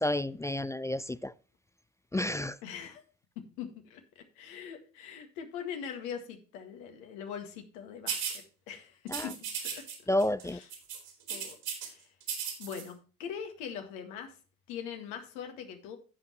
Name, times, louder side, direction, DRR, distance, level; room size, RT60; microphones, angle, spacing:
voice 1, 0.0-1.3 2.1-2.5 9.1-9.2 10.1-10.6, left 1 dB, 10° left, 0.3 m, -30 dB
voice 2, 2.6-3.0 3.6-8.2 8.7-9.4 9.6-10.1 10.4-10.7 11.3-11.6 11.8-12.1 12.6-14.3 14.7-16.0, left 8 dB, 75° left, 1.9 m, -42 dB
sound 1, 8.1-8.4 9.1-9.9 10.2-10.4 10.7-11.9 12.2-12.8, right 7 dB, 65° right, 3.5 m, -36 dB
16.0 x 5.6 x 3.1 m
hypercardioid pair, 55°, 38 cm